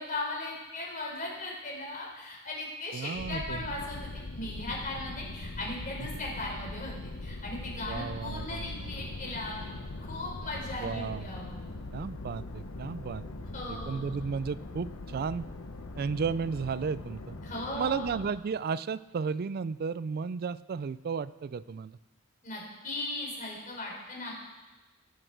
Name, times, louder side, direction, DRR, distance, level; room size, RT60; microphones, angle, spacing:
voice 1, 0.0-9.7 10.1-11.5 13.5-14.1 17.4-18.1 22.4-24.3, left 2 dB, 40° left, -2 dB, 4.0 m, -38 dB
voice 2, 2.9-3.6 7.9-8.9 10.8-11.3 11.9-13.2 13.7-15.5 16.0-17.3 17.7-22.0, right 5 dB, 45° right, 17 dB, 0.3 m, -33 dB
sound 1, 3.1-18.3, left 2 dB, 80° left, 1.1 m, -41 dB
17.0 x 10.0 x 4.6 m, 1.2 s
head